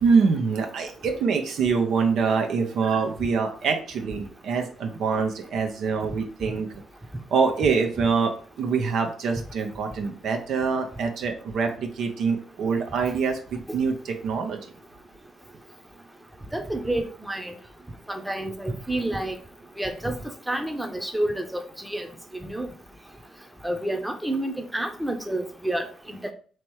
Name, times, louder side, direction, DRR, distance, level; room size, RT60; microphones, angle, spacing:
voice 1, 0.0-6.7 7.3-14.6, right 5 dB, 65° right, 4 dB, 0.6 m, -25 dB
voice 2, 16.5-17.5 18.1-19.3 19.8-20.2 20.5-22.1 22.4-22.7 23.6-26.3, right 1 dB, 5° right, 6 dB, 0.8 m, -29 dB
3.1 x 3.0 x 4.6 m, 0.42 s
hypercardioid pair, 50°, 0 cm